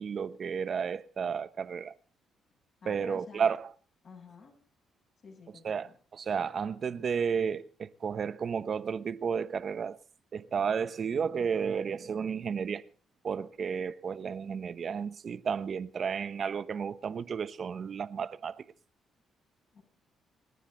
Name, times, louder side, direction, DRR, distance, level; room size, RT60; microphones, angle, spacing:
voice 1, 0.0-1.9 2.8-3.7 5.6-10.0 10.3-12.9 13.2-18.7, right 6 dB, 50° right, 1.0 m, -32 dB
voice 2, 2.8-3.5 4.0-4.6 5.2-5.9 19.7-19.8, left 4 dB, 55° left, 6.8 m, -50 dB
29.5 x 9.9 x 3.9 m
cardioid pair, 90°, 0 cm